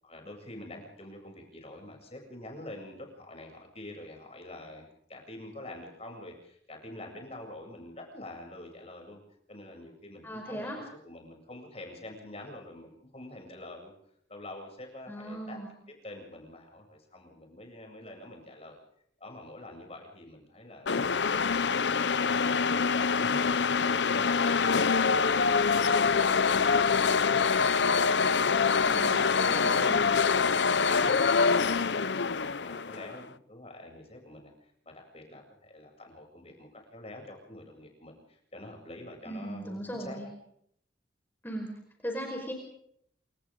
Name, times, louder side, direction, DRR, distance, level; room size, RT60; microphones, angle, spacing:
voice 1, 0.0-9.2 9.5-13.9 14.3-15.6 16.0-18.8 19.2-24.5 29.4-34.5 34.8-40.3, left 1 dB, 35° left, 1 dB, 7.8 m, -46 dB
voice 2, 10.2-10.8 15.1-15.8 28.7-30.0 39.2-40.3 41.4-42.5, equal, 10° left, 1 dB, 5.0 m, -38 dB
sound 1, 20.9-33.2, left 5 dB, 70° left, 0.8 m, -25 dB
29.5 x 27.0 x 3.8 m, 0.70 s
head